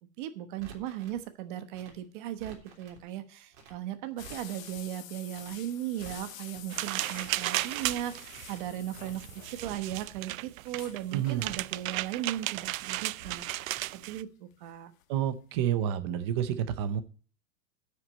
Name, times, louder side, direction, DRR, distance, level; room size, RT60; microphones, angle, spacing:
voice 1, 0.2-14.9, right 12 dB, 40° right, 10 dB, 1.1 m, -37 dB
Crackle, 0.6-1.2 1.7-3.0 3.5-3.8 4.0-4.8 5.3-5.6 5.8-6.6 7.1-7.4 7.7-8.4 8.9-9.2 9.5-10.2 10.7-11.0 11.3-12.0 12.5-12.8 13.1-13.8 14.1-14.2, right 5 dB, 60° right, 3.4 m, -51 dB
sound 1, 4.2-10.0 10.3-10.4 10.7-11.5 12.6-12.9 13.4-14.7 15.0-15.1 15.5-15.6, left 11 dB, 80° left, 1.2 m, -49 dB
sound 2, 6.7-14.2, right 17 dB, 90° right, 0.5 m, -35 dB
voice 2, 11.1-11.5 15.1-17.0, right 10 dB, 20° right, 13 dB, 0.5 m, -29 dB
9.5 x 6.2 x 8.2 m, 0.40 s
supercardioid pair, 175°, 40 cm